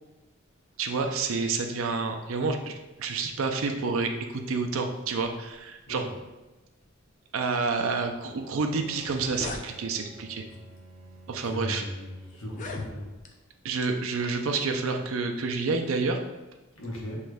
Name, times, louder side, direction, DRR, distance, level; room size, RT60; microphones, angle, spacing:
voice 1, 0.8-6.1 7.3-10.5 11.3-11.8 13.6-16.2, right 4 dB, 75° right, 4 dB, 0.5 m, -29 dB
Bowed string instrument, 8.0-13.3, right 1 dB, 10° right, 1.5 m, -51 dB
sound 1, 8.5-8.6 8.9-9.7 10.5-10.7 11.4-11.5 12.4-13.3, left 3 dB, 35° left, 0.4 m, -38 dB
voice 2, 11.4-13.0 16.8-17.2, left 1 dB, 80° left, -2 dB, 1.1 m, -37 dB
6.3 x 3.1 x 2.2 m, 1.1 s
head